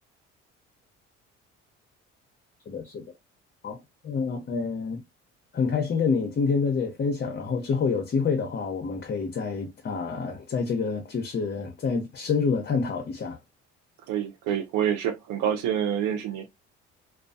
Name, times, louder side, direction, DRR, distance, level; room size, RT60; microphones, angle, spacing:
voice 1, 2.7-3.0 3.6-3.8 4.0-5.0 5.5-13.4, left 5 dB, 35° left, 0.7 m, -27 dB
voice 2, 14.1-16.5, right 9 dB, 80° right, 0.8 m, -27 dB
2.4 x 2.3 x 2.5 m
supercardioid pair, 75°, 29 cm